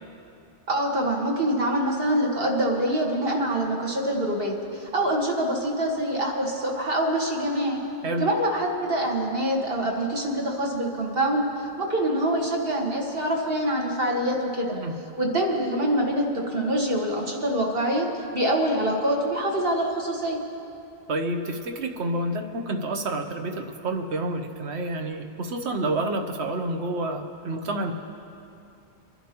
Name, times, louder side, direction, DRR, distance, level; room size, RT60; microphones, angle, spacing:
voice 1, 0.7-7.8 8.2-14.7 15.2-18.1 18.3-20.4, right 1 dB, 60° right, -1 dB, 1.8 m, -25 dB
voice 2, 21.1-27.9, right 1 dB, 85° right, 4 dB, 1.3 m, -29 dB
26.0 x 11.0 x 3.0 m, 2.7 s
omnidirectional pair, 1.1 m